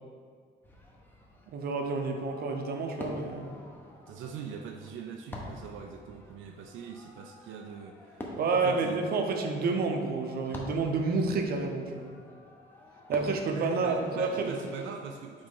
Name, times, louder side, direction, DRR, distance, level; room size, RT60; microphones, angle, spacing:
Fireworks, 0.6-14.9, left 1 dB, 10° left, 0.7 m, -47 dB
voice 1, 1.5-3.6 8.4-12.1 13.1-14.6, right 4 dB, 50° right, 3 dB, 0.7 m, -29 dB
voice 2, 4.1-9.0 13.5-15.5, right 6 dB, 80° right, 3 dB, 0.5 m, -42 dB
5.3 x 4.2 x 5.4 m, 2.1 s
cardioid pair, 165°, 20 cm